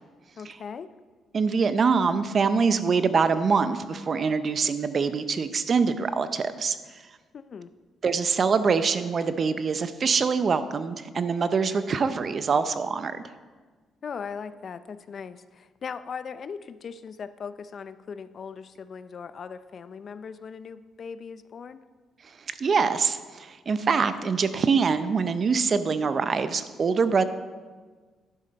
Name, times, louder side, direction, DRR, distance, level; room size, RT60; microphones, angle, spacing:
voice 1, 0.4-0.9 7.3-7.7 14.0-21.8, left 6 dB, 50° left, 13 dB, 0.4 m, -39 dB
voice 2, 1.3-6.8 8.0-13.2 22.6-27.2, right 5 dB, 45° right, 12 dB, 0.6 m, -24 dB
11.5 x 6.7 x 5.2 m, 1.4 s
cardioid pair, 90°, 0 cm